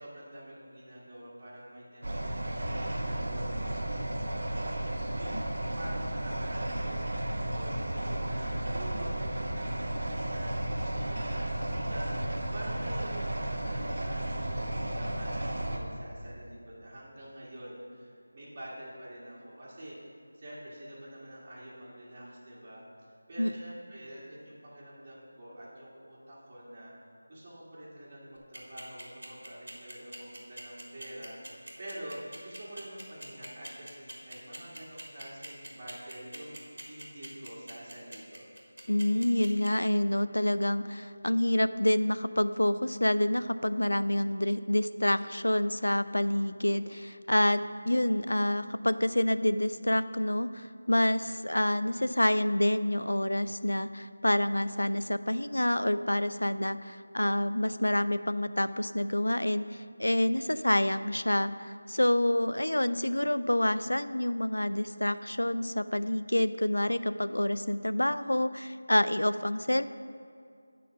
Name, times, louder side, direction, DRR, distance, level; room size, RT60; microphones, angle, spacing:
voice 1, 0.0-20.0 20.3-22.8 23.3-26.9 27.3-38.5, right 1 dB, 30° right, -8 dB, 1.7 m, -46 dB
sound 1, 2.0-15.8, right 1 dB, 65° right, 1.0 m, -33 dB
sound 2, 28.4-39.7, right 1 dB, 90° right, 1.8 m, -44 dB
voice 2, 38.9-47.6 47.9-69.8, left 1 dB, 90° left, 13 dB, 0.3 m, -27 dB
9.2 x 3.8 x 6.7 m, 2.3 s
figure-of-eight pair, 170°, 0 cm